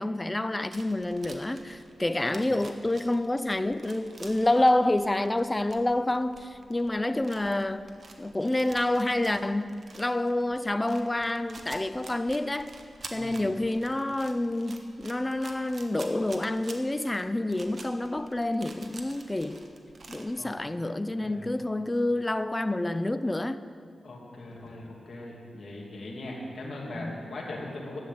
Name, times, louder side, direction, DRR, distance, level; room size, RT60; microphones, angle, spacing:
voice 1, 0.0-7.9 8.2-12.7 13.1-19.7 20.1-23.6 26.9-27.2, left 1 dB, 20° left, 0.5 m, -28 dB
sound 1, 0.7-20.4, right 3 dB, 50° right, 1.3 m, -49 dB
voice 2, 21.2-21.5 24.0-28.0, left 2 dB, 65° left, 2.7 m, -40 dB
11.5 x 7.5 x 8.8 m
cardioid pair, 75°, 0 cm